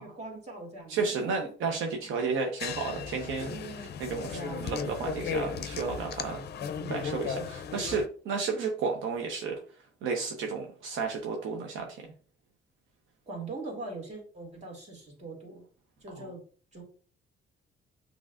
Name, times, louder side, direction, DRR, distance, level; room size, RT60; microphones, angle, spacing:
voice 1, 0.0-1.5 3.4-3.9 4.2-4.7 6.6-7.5 13.3-15.6 16.0-16.4 16.7-16.8, right 3 dB, 35° right, 0 dB, 2.2 m, -42 dB
voice 2, 0.9-3.6 4.0-4.3 4.6-6.4 6.9-9.6 10.0-12.1 16.2-16.3, right 5 dB, 85° right, 2 dB, 0.9 m, -32 dB
sound 1, 2.6-8.1, left 7 dB, 55° left, 0.5 m, -36 dB
6.2 x 3.1 x 2.5 m, 0.40 s
cardioid pair, 90°, 20 cm